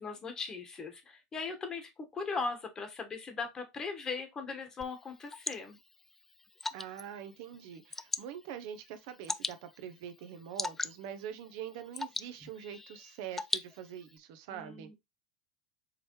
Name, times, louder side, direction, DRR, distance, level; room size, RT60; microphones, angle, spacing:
voice 1, 0.0-5.8 14.5-14.9, left 4 dB, 30° left, 1.3 m, -39 dB
Water / Drip, 4.8-14.2, left 3 dB, 10° left, 0.3 m, -41 dB
voice 2, 6.7-14.9, right 9 dB, 70° right, 0.7 m, -44 dB
4.8 x 3.2 x 3.1 m
supercardioid pair, 110°, 2 cm